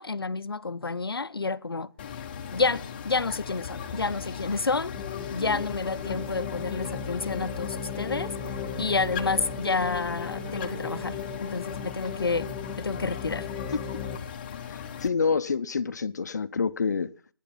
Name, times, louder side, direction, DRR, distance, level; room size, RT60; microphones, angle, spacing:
voice 1, 0.0-1.9 2.5-4.9 5.3-8.3 8.8-13.5 13.7-13.8, left 4 dB, 75° left, 0.8 m, -29 dB
sound 1, 2.0-15.1, left 7 dB, 25° left, 1.0 m, -38 dB
sound 2, 2.1-12.6, right 5 dB, 25° right, 1.0 m, -48 dB
sound 3, 4.9-14.2, left 7 dB, 5° left, 0.8 m, -37 dB
voice 2, 14.7-17.1, left 5 dB, 50° left, 0.8 m, -27 dB
17.0 x 10.5 x 5.9 m
figure-of-eight pair, 155°, 12 cm